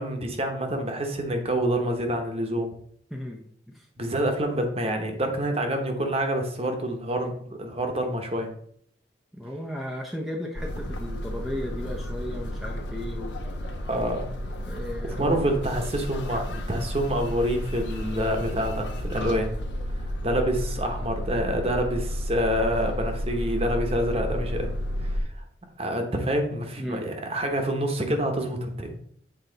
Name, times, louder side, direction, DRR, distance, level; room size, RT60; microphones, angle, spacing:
voice 1, 0.0-2.7 4.0-8.5 13.9-14.3 15.2-19.5 20.2-24.7 25.1-25.4 25.8-29.0, right 1 dB, 35° right, 4 dB, 1.0 m, -27 dB
voice 2, 3.1-3.9 9.3-13.4 14.6-15.5 26.8-27.1, left 1 dB, ahead, 0 dB, 0.6 m, -35 dB
sound 1, 10.6-25.2, equal, 85° left, 1.0 m, -32 dB
7.8 x 4.0 x 3.9 m, 0.65 s
head